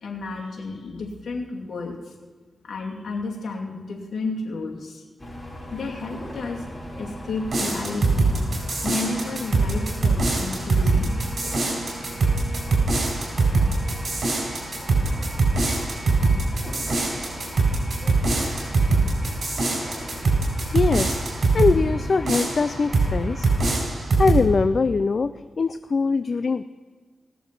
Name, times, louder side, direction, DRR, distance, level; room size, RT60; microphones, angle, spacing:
voice 1, 0.0-2.1 2.6-5.0 5.7-6.6 7.0-8.3 8.8-11.2, left 3 dB, 75° left, -1 dB, 2.5 m, -32 dB
sound 1, 5.2-23.8, equal, 15° left, 4.9 m, -38 dB
sound 2, 7.5-21.8 22.3-23.1 23.4-24.5, right 3 dB, 60° right, 4.6 m, -23 dB
voice 2, 20.7-21.2 21.5-23.5 24.2-26.6, left 4 dB, 60° left, 12 dB, 0.4 m, -22 dB
19.0 x 7.1 x 6.0 m, 1.5 s
cardioid pair, 50°, 0 cm